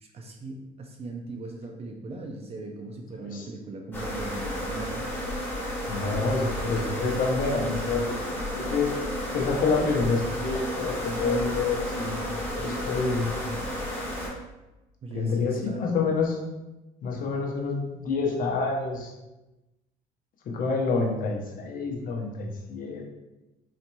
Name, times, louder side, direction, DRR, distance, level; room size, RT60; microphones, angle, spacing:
voice 1, 0.0-5.1 15.0-15.8, right 2 dB, 35° right, 2 dB, 0.5 m, -39 dB
sound 1, 3.9-14.3, equal, 10° left, 1.3 m, -32 dB
voice 2, 5.9-8.2 8.5-9.0 9.3-12.2 12.6-13.3 15.1-16.4 17.0-19.1 20.5-23.1, left 4 dB, 55° left, 0 dB, 0.7 m, -27 dB
4.0 x 2.8 x 2.2 m, 1.0 s
cardioid pair, 110°, 17 cm